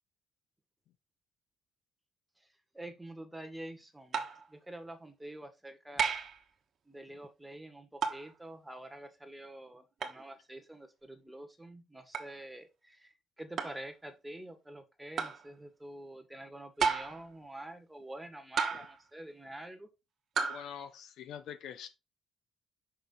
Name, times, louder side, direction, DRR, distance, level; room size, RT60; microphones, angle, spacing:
voice 1, 2.7-4.2 4.5-6.2 6.9-19.9, right 1 dB, 10° right, 1.7 m, -47 dB
sound 1, 4.1-4.5 6.0-6.4 8.0-8.3 10.0-10.2 12.1-12.3 13.6-13.8 15.2-15.4 16.8-17.3 18.6-19.0 20.4-20.7, right 6 dB, 60° right, 1.4 m, -32 dB
voice 2, 20.5-21.9, left 9 dB, 80° left, 1.0 m, -44 dB
6.0 x 5.7 x 3.9 m
cardioid pair, 90°, 0 cm